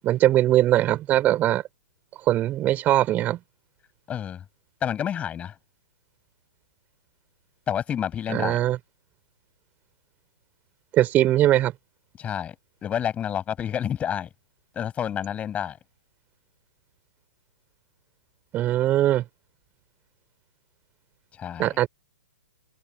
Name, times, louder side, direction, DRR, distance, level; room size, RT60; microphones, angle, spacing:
voice 1, 0.0-1.6 2.2-3.4 8.3-8.8 10.9-11.7 18.5-19.2 21.6-21.9, right 13 dB, 20° right, 3.5 m, -21 dB
voice 2, 4.1-4.4 4.8-5.6 7.7-8.6 12.2-12.6 12.8-14.3 14.7-15.8 21.3-21.8, left 9 dB, 15° left, 7.2 m, -29 dB
open air
figure-of-eight pair, 125°, 8 cm